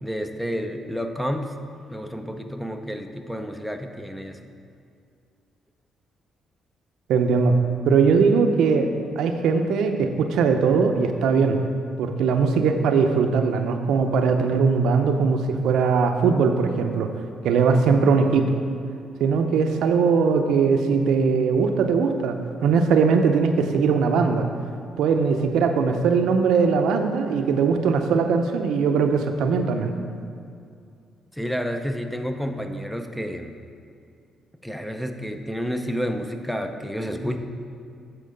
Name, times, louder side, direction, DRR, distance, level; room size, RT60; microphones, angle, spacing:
voice 1, 0.0-1.5 1.9-4.5 31.3-33.5 34.6-37.4, equal, ahead, 6 dB, 0.5 m, -30 dB
voice 2, 7.1-7.6 7.9-8.9 9.2-11.6 12.0-17.1 17.4-18.6 19.2-22.4 22.6-24.5 25.0-29.9, right 5 dB, 80° right, 6 dB, 0.6 m, -20 dB
8.7 x 4.5 x 5.2 m, 2.4 s
cardioid pair, 90°, 0 cm